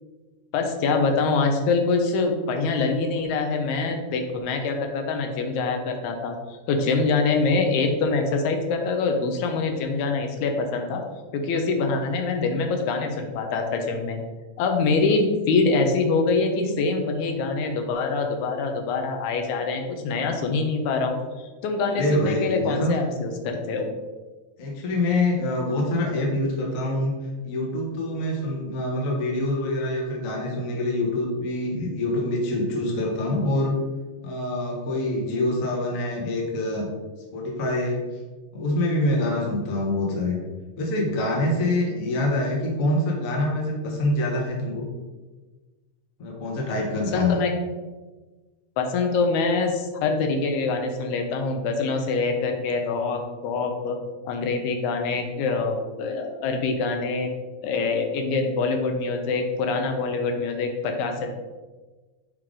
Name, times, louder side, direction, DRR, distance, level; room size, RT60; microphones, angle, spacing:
voice 1, 0.5-6.4 6.7-11.0 11.3-14.2 14.6-23.9 47.1-47.5 48.8-54.0 54.3-57.3 57.6-61.3, left 4 dB, 80° left, 4 dB, 2.1 m, -24 dB
voice 2, 21.8-22.9 24.6-27.1 27.4-33.7 34.2-36.9 37.3-38.0 38.5-40.4 40.8-44.8 46.2-47.4, left 1 dB, 55° left, -2 dB, 0.9 m, -25 dB
5.9 x 4.8 x 3.7 m, 1.3 s
omnidirectional pair, 3.5 m